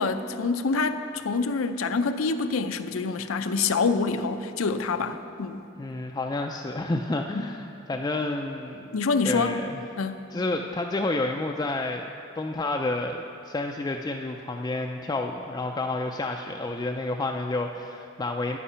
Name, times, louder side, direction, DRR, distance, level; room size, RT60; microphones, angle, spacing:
voice 1, 0.0-5.6 7.3-7.4 8.9-9.6 10.0-10.3, left 4 dB, 85° left, 9 dB, 0.5 m, -26 dB
voice 2, 5.8-8.9 9.2-9.8 10.3-12.1 12.3-18.6, left 2 dB, 20° left, 2 dB, 0.3 m, -30 dB
9.7 x 8.5 x 5.6 m, 2.7 s
head